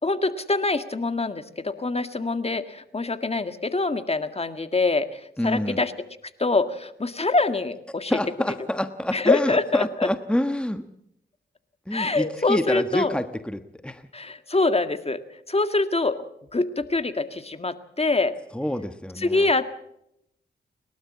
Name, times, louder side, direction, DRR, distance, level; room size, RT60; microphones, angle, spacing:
voice 1, 0.0-5.9 6.4-8.2 9.1-10.1 11.9-13.2 14.1-15.2 15.5-16.2 16.5-18.3 19.2-19.7, left 3 dB, 30° left, 9 dB, 1.9 m, -24 dB
voice 2, 5.4-5.8 8.1-10.8 11.9-14.1 18.5-19.5, left 1 dB, 5° left, 9 dB, 1.3 m, -27 dB
29.5 x 12.5 x 7.5 m, 0.77 s
cardioid pair, 50°, 20 cm